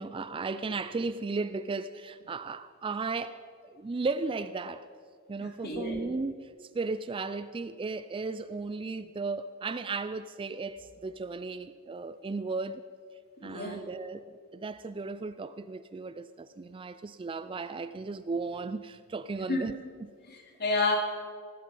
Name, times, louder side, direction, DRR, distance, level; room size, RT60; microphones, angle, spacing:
voice 1, 0.0-4.9 5.3-12.8 13.4-14.2 14.5-19.7 20.0-20.1, right 3 dB, 25° right, 0.3 m, -35 dB
voice 2, 5.4-6.0 13.4-13.8 19.5-19.7 20.2-21.0, left 3 dB, 45° left, 2.5 m, -30 dB
19.0 x 13.0 x 5.4 m
head